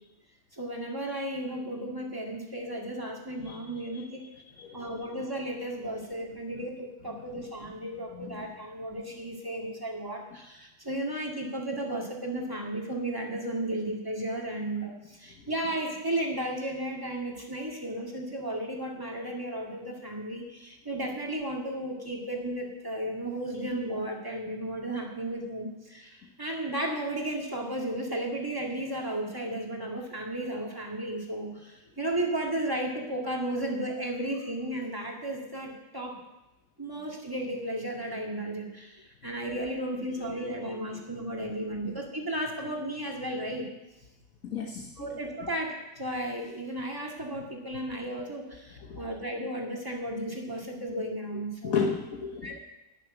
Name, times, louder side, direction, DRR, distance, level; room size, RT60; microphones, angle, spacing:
voice 1, 0.5-4.2 4.7-36.2 36.8-43.7 45.0-51.8 52.4-52.6, right 1 dB, 15° right, -1 dB, 2.2 m, -34 dB
voice 2, 4.6-4.9 8.2-8.3 44.4-45.1 48.9-49.0 51.6-52.6, left 6 dB, 55° left, 2 dB, 1.4 m, -32 dB
12.0 x 6.9 x 9.6 m, 1.0 s
omnidirectional pair, 1.8 m